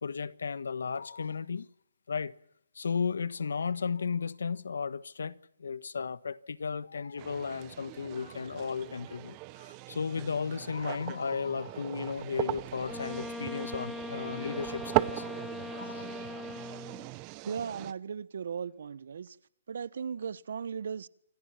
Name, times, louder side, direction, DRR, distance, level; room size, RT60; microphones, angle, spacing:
voice 1, 0.0-1.7 2.1-2.3 2.7-15.2 15.7-16.1, left 5 dB, 85° left, 1.4 m, -34 dB
sound 1, 7.2-17.9, right 21 dB, 30° right, 1.1 m, -38 dB
Wind instrument woodwind instrument, 12.9-17.2, left 3 dB, 10° left, 1.0 m, -41 dB
voice 2, 17.4-19.4 19.7-21.1, right 7 dB, 70° right, 1.4 m, -37 dB
28.0 x 25.5 x 6.0 m
hypercardioid pair, 145°, 0 cm